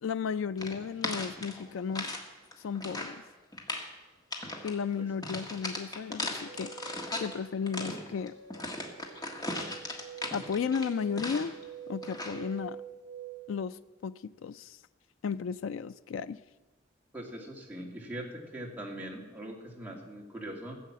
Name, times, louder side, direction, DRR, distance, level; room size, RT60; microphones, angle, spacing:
voice 1, 0.0-2.2 2.6-3.2 4.6-6.8 7.2-8.3 10.3-11.6 11.9-12.8 13.5-14.8 15.2-16.4, left 6 dB, 75° left, 0.4 m, -34 dB
sound 1, 0.6-2.2 2.5-3.2 3.5-3.9 4.3-4.8 5.2-7.3 7.7-11.6 12.0-12.5, left 1 dB, 20° left, 1.5 m, -37 dB
sound 2, 6.5-13.6, right 7 dB, 60° right, 1.8 m, -47 dB
voice 2, 17.1-20.8, right 1 dB, 10° right, 2.2 m, -41 dB
15.5 x 7.6 x 7.4 m
head